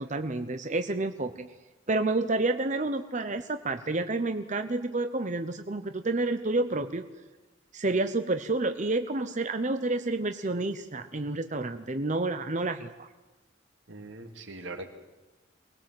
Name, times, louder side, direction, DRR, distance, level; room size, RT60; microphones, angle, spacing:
voice 1, 0.0-1.5 1.9-7.1 7.7-13.1, right 2 dB, 40° right, 8 dB, 0.9 m, -29 dB
voice 2, 13.9-14.9, right 2 dB, 85° right, 4 dB, 2.8 m, -41 dB
24.0 x 20.0 x 7.8 m, 1.1 s
head